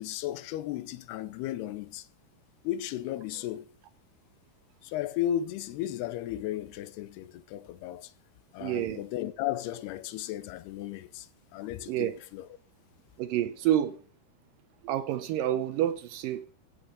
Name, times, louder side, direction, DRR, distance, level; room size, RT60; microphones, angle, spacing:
voice 1, 0.0-2.1 2.6-3.7 4.8-8.1 8.5-12.5, left 12 dB, 85° left, 2.8 m, -35 dB
voice 2, 8.6-9.0 11.9-12.2 13.2-14.0 14.8-16.5, right 11 dB, 75° right, 2.1 m, -28 dB
15.5 x 7.2 x 6.8 m
omnidirectional pair, 4.6 m